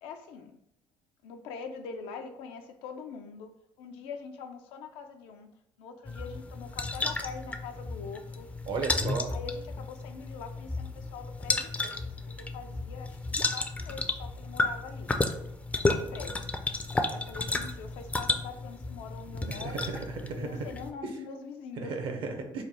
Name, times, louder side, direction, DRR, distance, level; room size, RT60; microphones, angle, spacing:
voice 1, 0.0-0.6 1.2-3.5 3.8-5.5 5.8-8.5 8.9-15.1 15.7-16.5 17.1-19.9 20.4-22.0, left 5 dB, 85° left, 6 dB, 0.4 m, -43 dB
sound 1, 6.1-20.9, left 2 dB, 15° left, 0.4 m, -33 dB
voice 2, 8.7-9.3 19.5-20.5 21.8-22.6, right 4 dB, 65° right, 5 dB, 0.7 m, -34 dB
3.3 x 2.2 x 4.1 m, 0.79 s
cardioid pair, 95°, 9 cm